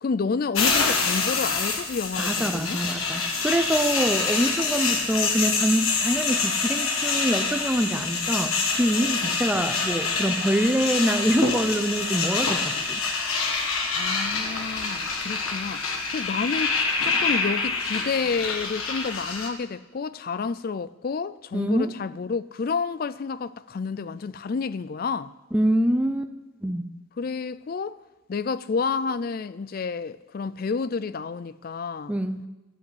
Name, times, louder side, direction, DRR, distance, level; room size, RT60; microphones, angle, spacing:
voice 1, 0.0-2.8 4.2-4.3 4.9-5.1 9.2-9.3 13.9-25.3 27.2-28.0 28.3-32.1, left 5 dB, 45° left, 0.3 m, -30 dB
sound 1, 0.5-19.5, left 4 dB, 85° left, 1.6 m, -26 dB
voice 2, 2.2-13.0 21.5-21.9 25.5-26.3 26.6-26.9 32.1-32.5, right 1 dB, 5° right, 0.6 m, -25 dB
12.5 x 8.3 x 8.0 m
head